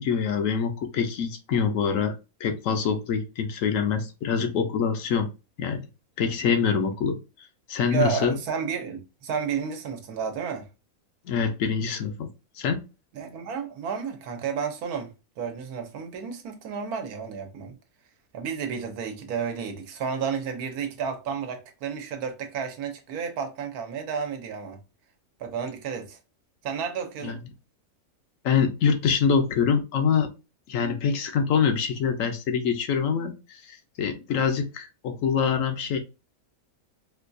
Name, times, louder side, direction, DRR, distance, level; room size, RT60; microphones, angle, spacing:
voice 1, 0.0-2.1 2.4-5.3 5.6-5.8 6.2-8.3 11.3-12.3 12.6-12.8 27.2-27.4 28.4-30.3 30.7-36.0, left 6 dB, 70° left, 0.9 m, -25 dB
voice 2, 7.9-10.7 13.1-17.8 18.3-24.8 25.4-26.2 26.6-27.4, right 6 dB, 85° right, 1.2 m, -31 dB
4.3 x 2.3 x 2.5 m
omnidirectional pair, 1.6 m